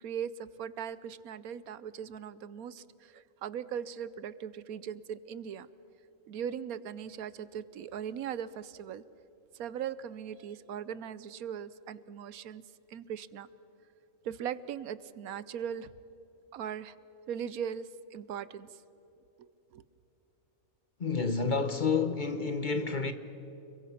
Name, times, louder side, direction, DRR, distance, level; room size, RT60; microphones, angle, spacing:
voice 1, 0.0-5.7 6.3-9.0 9.5-12.6 12.9-13.5 14.2-15.9 16.5-16.9 17.3-18.8 19.4-19.8, right 8 dB, 80° right, 1.2 m, -39 dB
voice 2, 21.0-23.1, left 4 dB, 40° left, 1.0 m, -29 dB
30.0 x 22.0 x 5.9 m
omnidirectional pair, 1.5 m